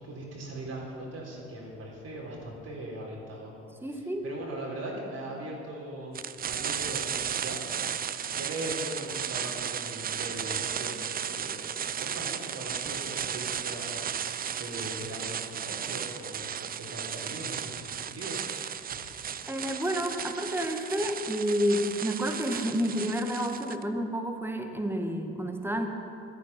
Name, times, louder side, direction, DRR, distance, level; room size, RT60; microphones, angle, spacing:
voice 1, 0.0-3.5 3.9-7.6 7.9-11.7 12.0-14.3 14.6-18.4 18.7-19.1, right 1 dB, 45° right, -3 dB, 3.9 m, -40 dB
voice 2, 3.8-4.2 19.5-25.9, equal, 5° right, 4 dB, 1.9 m, -30 dB
sound 1, 6.1-23.8, right 8 dB, 25° right, 0.6 m, -35 dB
15.5 x 13.5 x 5.6 m, 2.8 s
figure-of-eight pair, 50°, 35 cm